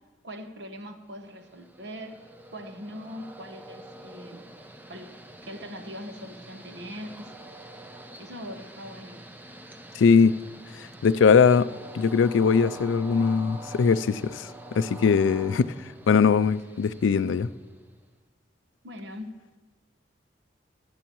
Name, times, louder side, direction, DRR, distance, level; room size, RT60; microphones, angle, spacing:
voice 1, 0.2-2.2 2.5-4.4 4.9-5.1 5.5-7.3 8.2-9.2 18.8-19.3, equal, 65° right, 6 dB, 1.1 m, -41 dB
Train, 1.2-18.0, right 1 dB, 10° right, 0.5 m, -46 dB
voice 2, 9.9-10.4 10.8-11.7 11.9-14.5 14.7-15.7 16.1-17.5, left 5 dB, 90° left, 16 dB, 0.4 m, -21 dB
17.0 x 11.5 x 3.1 m, 1.4 s
head